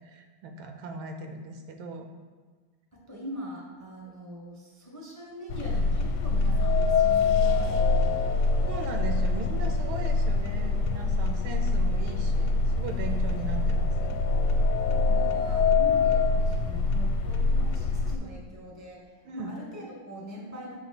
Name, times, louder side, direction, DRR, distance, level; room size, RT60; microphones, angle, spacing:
voice 1, 0.0-2.1 8.7-14.1 19.2-19.5, right 4 dB, 75° right, 4 dB, 1.4 m, -38 dB
voice 2, 2.9-8.3 14.9-20.8, equal, 10° left, -3 dB, 0.7 m, -42 dB
sound 1, 5.5-18.2, left 2 dB, 80° left, 1.4 m, -26 dB
sound 2, 6.6-10.6 11.0-11.1 12.0-12.1 12.5-16.3, left 9 dB, 60° left, 1.3 m, -28 dB
7.8 x 3.1 x 5.8 m, 1.4 s
omnidirectional pair, 2.4 m